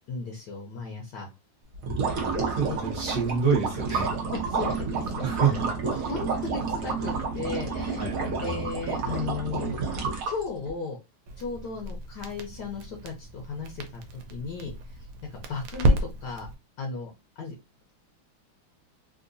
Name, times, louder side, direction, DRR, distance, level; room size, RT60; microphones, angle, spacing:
voice 1, 0.1-1.3 2.7-2.8 3.9-4.0 4.3-5.6 5.8-9.8 10.2-11.0 11.4-15.1 15.3-16.5 16.8-17.5, left 4 dB, 65° left, 1.2 m, -36 dB
sound 1, 1.7-10.7, right 4 dB, 60° right, 0.9 m, -30 dB
voice 2, 2.6-4.1 5.2-5.6 8.0-8.5, right 6 dB, 40° right, 1.2 m, -26 dB
Crackle, 11.3-16.6, right 1 dB, 85° right, 1.5 m, -31 dB
3.7 x 2.5 x 2.6 m
omnidirectional pair, 2.3 m